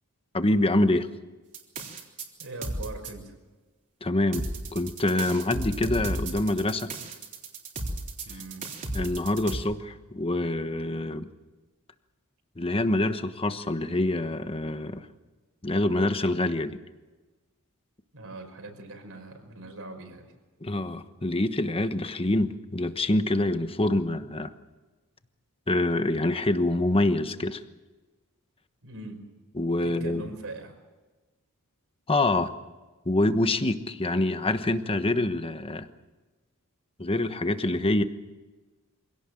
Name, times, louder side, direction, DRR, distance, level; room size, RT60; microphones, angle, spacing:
voice 1, 0.3-1.1 4.0-6.9 8.9-11.3 12.6-15.1 15.6-16.8 20.6-24.5 25.7-27.6 29.5-30.2 32.1-32.5 33.0-35.9 37.0-38.0, left 1 dB, 25° left, 9 dB, 1.2 m, -26 dB
sound 1, 1.5-3.1 4.3-9.6, right 2 dB, 35° right, 3.7 m, -34 dB
voice 2, 2.4-3.3 8.2-8.7 18.1-20.2 28.8-29.2 29.8-30.7, right 2 dB, 65° right, 5 dB, 5.3 m, -41 dB
25.5 x 17.5 x 7.8 m, 1.2 s
head